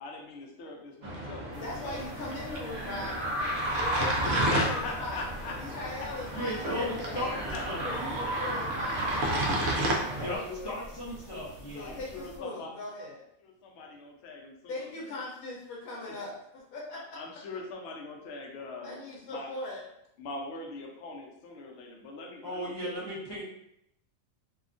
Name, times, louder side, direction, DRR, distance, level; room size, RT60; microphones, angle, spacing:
voice 1, 0.0-2.1 4.2-6.1 6.6-6.9 7.5-8.6 10.1-10.7 11.3-11.4 11.8-12.7 13.4-13.9 14.2-15.1 17.1-18.9 19.3-19.5 20.2-23.1, left 3 dB, 65° left, 1 dB, 0.7 m, -41 dB
sound 1, 1.0-10.4, right 1 dB, 65° right, 0.8 m, -31 dB
sound 2, 1.5-12.4, right 1 dB, 15° right, 0.6 m, -49 dB
voice 2, 1.6-3.3 3.7-5.2 5.6-7.4 7.8-9.4 10.1-10.5 11.7-13.2 14.7-16.3 16.7-17.0 18.8-19.8, left 2 dB, 85° left, -4 dB, 1.0 m, -39 dB
voice 3, 6.3-8.0 10.2-10.4 10.6-12.0 22.4-23.4, equal, 40° left, -9 dB, 0.3 m, -36 dB
2.7 x 2.3 x 2.5 m, 0.76 s
omnidirectional pair, 1.5 m